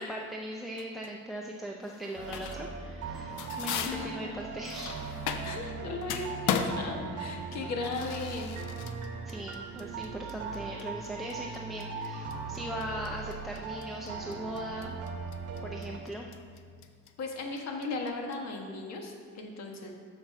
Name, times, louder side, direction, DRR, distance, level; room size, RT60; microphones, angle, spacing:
voice 1, 0.0-5.0 9.3-14.9 15.6-16.3, right 1 dB, ahead, 0 dB, 0.5 m, -39 dB
sound 1, 0.8-1.1 1.8-2.8 3.1-5.7 6.0-18.4, left 7 dB, 85° left, 0.7 m, -37 dB
sound 2, 2.2-16.0, right 4 dB, 50° right, 1.1 m, -39 dB
voice 2, 3.6-4.4 5.4-8.5 17.2-19.9, left 3 dB, 60° left, 2 dB, 1.4 m, -37 dB
7.0 x 6.5 x 5.3 m, 2.1 s
cardioid pair, 125°, 30 cm